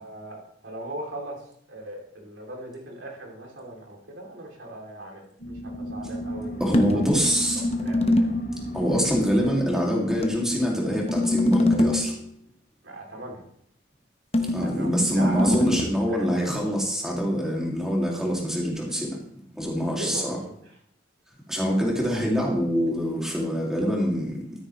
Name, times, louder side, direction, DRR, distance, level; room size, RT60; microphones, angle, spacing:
voice 1, 0.0-7.0 7.5-8.3 12.8-13.4 14.6-16.4 19.8-20.8, right 1 dB, 80° right, -1 dB, 2.7 m, -39 dB
sound 1, 5.4-11.6, equal, 60° left, 2.7 m, -34 dB
voice 2, 6.6-7.6 8.7-12.2 14.5-19.2 19.5-20.4 21.5-24.4, equal, 5° right, -2 dB, 2.2 m, -25 dB
sound 2, 6.7-8.5 10.2-12.2 14.3-15.8, left 1 dB, 30° left, 0.8 m, -24 dB
13.0 x 9.4 x 3.1 m, 0.66 s
head